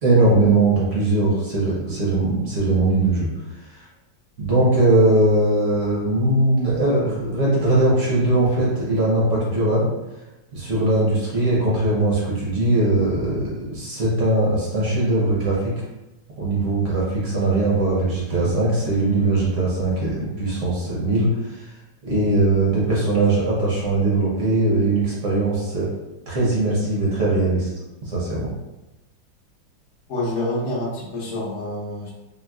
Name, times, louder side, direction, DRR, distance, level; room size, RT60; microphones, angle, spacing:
voice 1, 0.0-3.3 3.6-3.8 4.4-9.9 10.5-15.7 16.4-21.7 22.0-25.9 26.3-27.7 28.1-28.5, right 2 dB, 55° right, -6 dB, 0.8 m, -20 dB
voice 2, 30.1-32.1, left 1 dB, 60° left, -5 dB, 0.8 m, -27 dB
3.9 x 2.1 x 2.3 m, 1.0 s
omnidirectional pair, 2.2 m